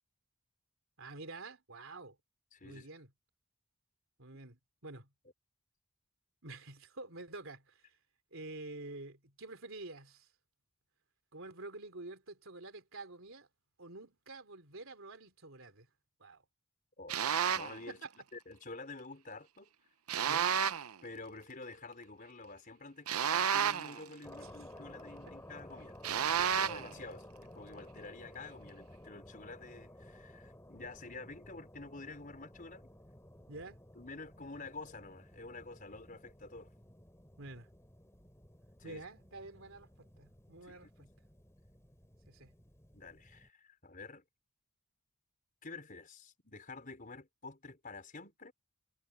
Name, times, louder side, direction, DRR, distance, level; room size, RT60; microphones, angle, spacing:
voice 1, 1.0-2.2 2.6-3.1 4.2-5.1 6.4-8.0 8.3-10.3 11.3-13.5 13.8-15.9 16.2-16.4 17.9-18.3 20.3-20.5 24.4-24.7 33.5-33.8 37.4-37.7 38.8-41.1 42.3-42.5, right 2 dB, 65° right, 3.5 m, -48 dB
voice 2, 2.5-2.9 17.0-17.2 17.5-18.0 18.3-19.7 21.0-32.8 33.9-36.7 38.8-39.0 40.7-41.1 42.9-44.2 45.6-48.5, left 3 dB, 40° left, 4.6 m, -49 dB
sound 1, 17.1-17.8 20.1-20.9 23.1-24.0 26.0-26.9, right 8 dB, 90° right, 0.7 m, -31 dB
sound 2, 24.2-43.5, left 1 dB, 15° left, 3.2 m, -55 dB
head